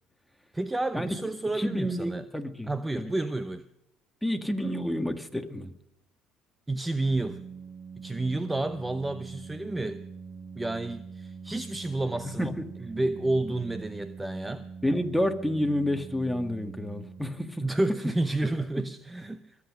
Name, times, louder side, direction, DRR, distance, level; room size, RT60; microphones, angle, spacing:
voice 1, 0.5-2.2 2.7-3.6 6.7-7.4 8.0-10.0 10.6-12.5 12.8-14.7 17.6-19.5, right 2 dB, 15° right, 0.8 m, -30 dB
voice 2, 1.5-3.1 4.2-5.7 12.4-12.6 14.8-17.6 18.8-18.9, left 1 dB, 5° left, 1.9 m, -29 dB
Organ, 6.9-17.7, right 5 dB, 35° right, 1.3 m, -43 dB
22.0 x 8.5 x 6.3 m
hypercardioid pair, 70°, 0 cm